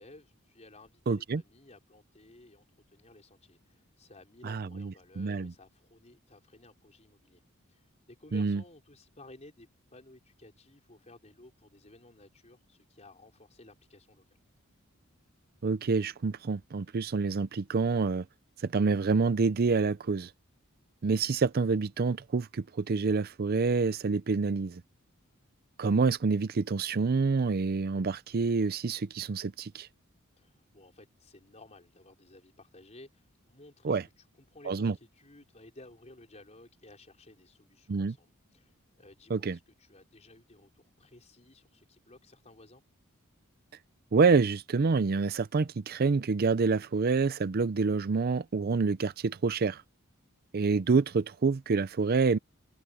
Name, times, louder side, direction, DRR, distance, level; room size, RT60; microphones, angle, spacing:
voice 1, 0.0-2.7 2.9-7.4 7.7-14.4 30.4-34.0 34.4-42.8, left 2 dB, 30° left, 4.5 m, -55 dB
voice 2, 1.1-1.4 4.4-5.5 8.3-8.6 15.6-18.2 18.6-20.3 21.0-24.8 25.8-29.9 33.8-34.0 34.7-34.9 37.9-38.1 39.3-39.6 44.1-49.8 50.5-52.4, right 4 dB, 45° right, 0.5 m, -27 dB
head